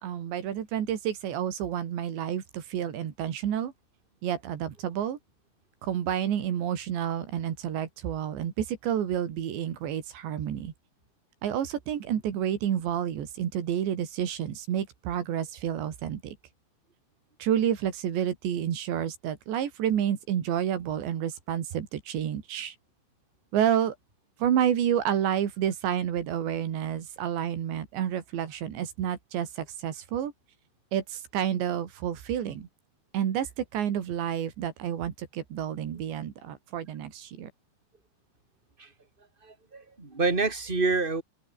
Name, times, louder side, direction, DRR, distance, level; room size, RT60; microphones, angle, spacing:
voice 1, 0.0-3.7 4.2-5.2 5.8-10.7 11.4-16.4 17.4-22.8 23.5-24.0 24.4-30.3 30.9-32.7 33.1-37.5, right 10 dB, 70° right, 4.7 m, -29 dB
voice 2, 39.4-41.2, right 3 dB, 15° right, 2.4 m, -27 dB
open air
omnidirectional pair, 5.4 m